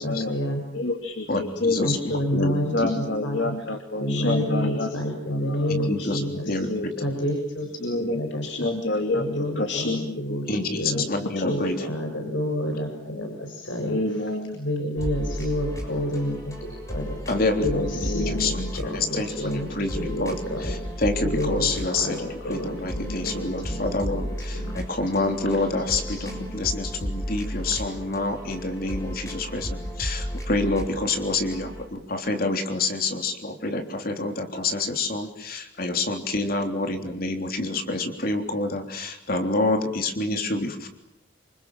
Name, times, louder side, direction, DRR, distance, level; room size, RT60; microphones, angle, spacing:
voice 1, 0.0-0.6 1.8-3.6 3.9-6.5 7.0-8.7 9.1-11.0 11.4-14.3 14.5-17.2 17.6-19.7 19.9-24.8 25.2-26.5 26.9-27.2, equal, 80° left, 2 dB, 6.9 m, -30 dB
voice 2, 0.7-1.8 2.7-4.9 5.6-7.1 7.8-10.4 10.9-11.0 11.4-11.6 13.9-14.6 18.0-18.5 23.0-23.3, left 2 dB, 65° left, 5 dB, 2.7 m, -28 dB
voice 3, 1.3-2.5 5.7-6.7 10.5-11.9 17.3-19.3 19.7-20.3 20.6-40.9, left 2 dB, 50° left, 4 dB, 3.5 m, -27 dB
sound 1, 15.0-31.9, equal, 15° left, 6.8 m, -34 dB
28.0 x 27.0 x 7.5 m, 0.81 s
head